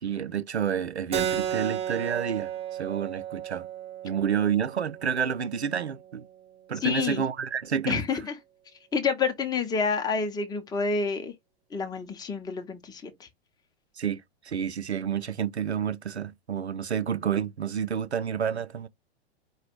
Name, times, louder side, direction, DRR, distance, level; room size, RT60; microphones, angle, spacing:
voice 1, 0.0-2.5 2.8-3.7 4.0-6.2 6.7-8.0 14.0-18.9, right 8 dB, 80° right, 0.6 m, -29 dB
Keyboard (musical), 1.1-6.2, right 9 dB, 20° right, 1.0 m, -34 dB
voice 2, 6.8-7.2 7.9-8.4 8.9-11.3 11.7-13.3, left 5 dB, 10° left, 0.9 m, -28 dB
5.0 x 2.4 x 4.5 m
figure-of-eight pair, 105°, 33 cm